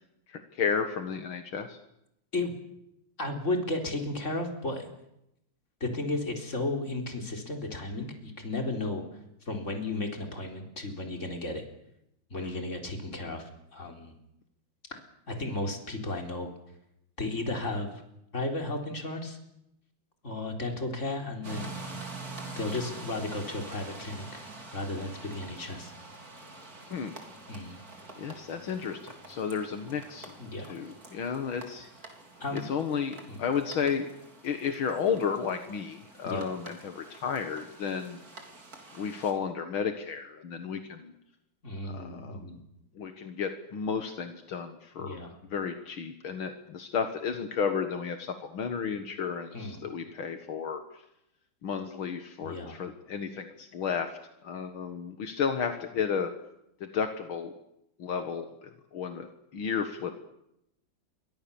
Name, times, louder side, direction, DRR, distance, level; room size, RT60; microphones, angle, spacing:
voice 1, 0.3-1.8 12.4-12.7 26.9-27.1 28.2-30.3 30.6-31.9 32.5-34.1 34.4-38.2 39.0-41.1 41.8-42.5 43.0-45.2 45.5-51.0 51.6-56.3 56.8-57.5 58.0-60.2, left 6 dB, 75° left, 7 dB, 2.4 m, -33 dB
voice 2, 3.2-4.9 5.8-9.0 9.5-11.6 12.3-14.1 14.9-15.0 15.3-16.5 17.2-17.9 18.3-19.4 20.2-21.8 22.6-24.4 24.7-25.9 27.5-27.8 30.4-30.9 32.4-32.6 33.2-33.4 36.2-36.5 41.6-42.6 45.0-45.4 49.5-49.9 52.4-52.8, left 2 dB, 35° left, 3 dB, 4.3 m, -34 dB
sound 1, 21.4-39.3, right 3 dB, 45° right, 4.1 m, -46 dB
28.0 x 24.0 x 7.2 m, 0.82 s
omnidirectional pair, 2.3 m